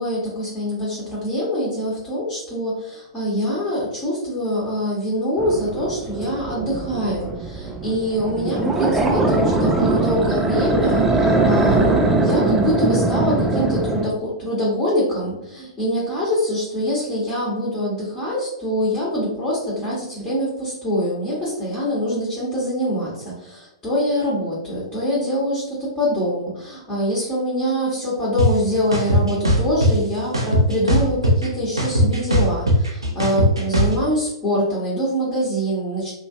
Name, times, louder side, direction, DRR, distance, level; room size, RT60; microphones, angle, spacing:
voice 1, 0.0-36.1, equal, 20° left, -7 dB, 1.3 m, -24 dB
sound 1, 5.4-14.1, right 2 dB, 5° right, 0.4 m, -21 dB
sound 2, 28.4-28.5 28.9-29.9 30.3-31.5 31.8-33.9, equal, 85° right, 0.7 m, -17 dB
3.0 x 2.5 x 2.7 m, 0.81 s
figure-of-eight pair, 110°, 3 cm